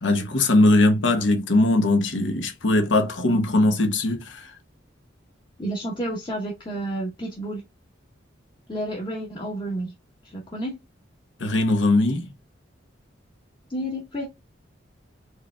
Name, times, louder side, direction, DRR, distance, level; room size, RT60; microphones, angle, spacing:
voice 1, 0.0-4.5 11.4-12.3, left 2 dB, 80° left, 1.0 m, -20 dB
voice 2, 5.6-7.6 8.7-9.9 10.2-10.7 13.7-14.3, right 1 dB, 25° left, 0.9 m, -30 dB
4.7 x 3.1 x 2.2 m
head